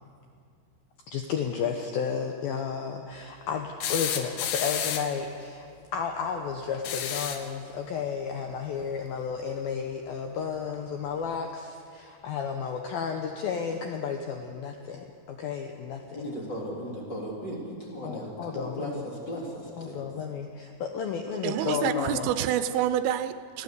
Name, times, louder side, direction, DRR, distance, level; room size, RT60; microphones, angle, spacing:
voice 1, 1.1-5.7 5.9-16.0 18.0-19.0 19.8-22.3, left 6 dB, 90° left, 2.0 m, -32 dB
sound 1, 3.8-5.2 6.7-7.5 9.2-9.3 10.7-10.8, left 9 dB, 70° left, 2.6 m, -31 dB
voice 2, 16.1-20.0, equal, 25° left, 3.7 m, -36 dB
voice 3, 21.4-23.6, right 11 dB, 80° right, 3.1 m, -28 dB
24.0 x 15.5 x 8.3 m
omnidirectional pair, 5.8 m